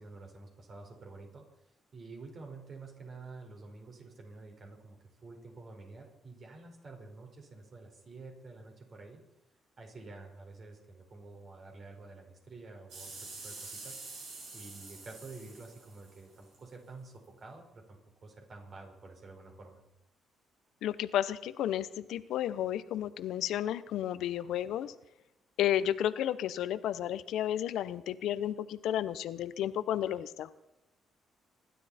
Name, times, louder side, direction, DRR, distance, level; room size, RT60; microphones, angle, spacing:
voice 1, 0.0-1.4 1.9-9.2 9.8-14.0 14.5-19.8, right 3 dB, 45° right, 2 dB, 5.0 m, -49 dB
sound 1, 12.9-16.6 17.2-17.3, right 3 dB, 80° right, 7.4 m, -46 dB
voice 2, 20.8-24.9 25.6-30.5, left 11 dB, 80° left, 14 dB, 0.8 m, -32 dB
26.0 x 12.5 x 4.3 m, 0.89 s
cardioid pair, 90°, 0 cm